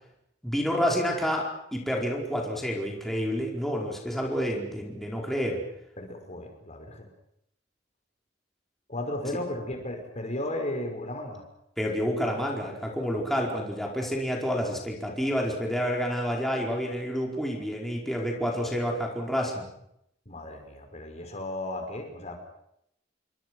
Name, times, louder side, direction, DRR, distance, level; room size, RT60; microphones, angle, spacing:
voice 1, 0.4-5.6 11.8-19.7, equal, ahead, -2 dB, 4.7 m, -29 dB
voice 2, 6.0-7.1 8.9-11.4 20.3-22.4, left 1 dB, 40° left, 4 dB, 5.3 m, -35 dB
29.5 x 24.0 x 6.3 m, 0.76 s
head